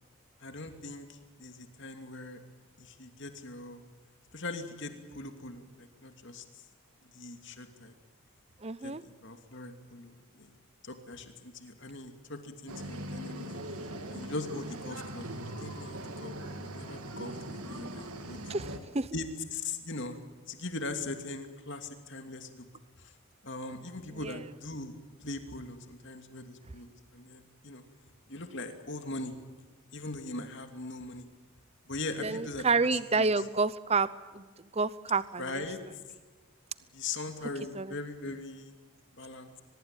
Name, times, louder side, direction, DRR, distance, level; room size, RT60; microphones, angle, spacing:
voice 1, 0.4-2.4 2.8-3.8 4.3-6.6 7.0-7.9 8.8-13.5 14.1-18.4 19.1-22.7 23.0-23.1 23.4-27.8 28.3-29.4 29.9-31.3 31.9-33.3 35.4-35.8 36.9-38.7 39.2-39.5, left 2 dB, 55° left, 6 dB, 2.7 m, -41 dB
voice 2, 8.6-9.0 18.5-19.1 24.2-24.5 32.2-34.1 34.3-34.4 34.7-35.9 37.4-37.5 37.7-38.0, right 4 dB, 30° right, 16 dB, 0.7 m, -29 dB
sound 1, 12.7-18.8, right 1 dB, 90° right, 2.8 m, -40 dB
23.5 x 21.5 x 9.1 m, 1.3 s
head